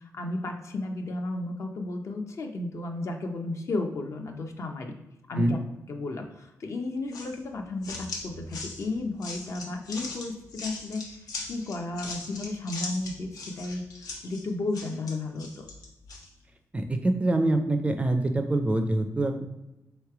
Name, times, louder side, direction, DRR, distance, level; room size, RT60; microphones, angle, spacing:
voice 1, 0.1-4.9 5.3-5.6 5.9-11.0 11.5-15.7, left 2 dB, 50° left, 4 dB, 0.6 m, -33 dB
sound 1, 7.1-16.3, left 3 dB, 85° left, 0.8 m, -40 dB
voice 2, 16.7-19.4, right 2 dB, 20° right, 6 dB, 0.4 m, -25 dB
3.2 x 3.1 x 4.7 m, 0.96 s
wide cardioid pair, 125°, 6 cm